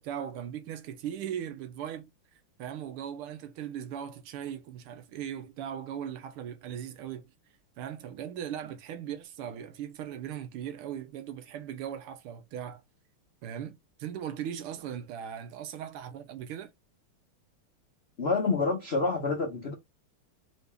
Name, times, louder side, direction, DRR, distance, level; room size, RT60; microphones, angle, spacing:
voice 1, 0.0-2.1 2.6-7.3 7.8-12.8 13.4-16.7, right 9 dB, 80° right, 1.6 m, -38 dB
voice 2, 18.2-19.7, left 3 dB, 65° left, 0.6 m, -27 dB
4.0 x 2.8 x 3.3 m
omnidirectional pair, 2.4 m